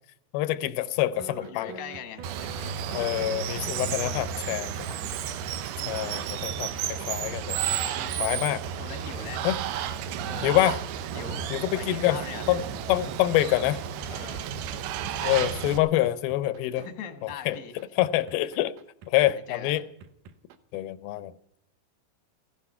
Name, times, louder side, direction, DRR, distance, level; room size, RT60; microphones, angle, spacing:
voice 1, 0.3-1.7 2.9-4.7 5.9-7.6 8.2-8.6 9.4-9.6 10.4-10.8 11.5-12.2 12.5-12.6 12.9-13.8 15.2-16.9 17.5-17.6 18.0-18.7 19.1-19.8 20.7-21.3, left 15 dB, 85° left, 2.6 m, -26 dB
voice 2, 1.2-3.2 3.8-5.3 7.7-8.3 8.8-9.5 10.2-10.5 11.1-11.4 11.7-12.5 14.1-14.5 15.0-15.5 16.7-17.8 19.1-19.8, left 7 dB, 45° left, 1.1 m, -42 dB
sound 1, 1.2-16.9 17.3-20.8, right 6 dB, 70° right, 1.7 m, -46 dB
Water, 2.2-15.8, right 9 dB, 85° right, 2.8 m, -32 dB
16.0 x 14.0 x 5.6 m
omnidirectional pair, 4.3 m